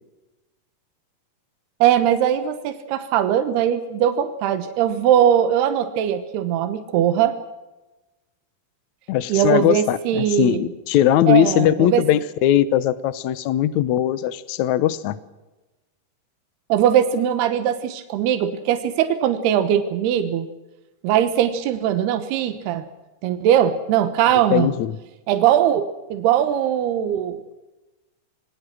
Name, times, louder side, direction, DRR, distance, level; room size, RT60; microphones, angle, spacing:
voice 1, 1.8-7.3 9.3-10.6 11.3-12.0 16.7-20.5 21.0-22.8 23.2-24.7 25.3-27.6, right 10 dB, 80° right, 9 dB, 3.2 m, -20 dB
voice 2, 9.1-15.2 24.5-24.9, left 11 dB, 80° left, 16 dB, 1.7 m, -19 dB
26.5 x 20.5 x 6.2 m, 1.1 s
omnidirectional pair, 4.6 m